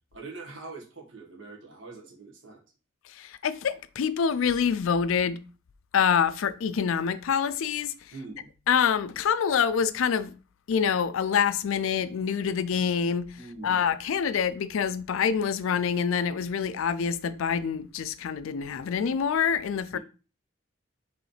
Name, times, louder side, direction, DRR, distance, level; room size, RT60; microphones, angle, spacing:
voice 1, 0.1-2.6 8.1-8.5 13.4-13.8 19.9-20.0, right 3 dB, 60° right, 1.5 m, -43 dB
voice 2, 3.1-5.4 5.9-7.9 8.7-10.3 10.7-13.4 13.6-20.0, left 7 dB, 70° left, 0.4 m, -26 dB
4.9 x 3.2 x 3.3 m
head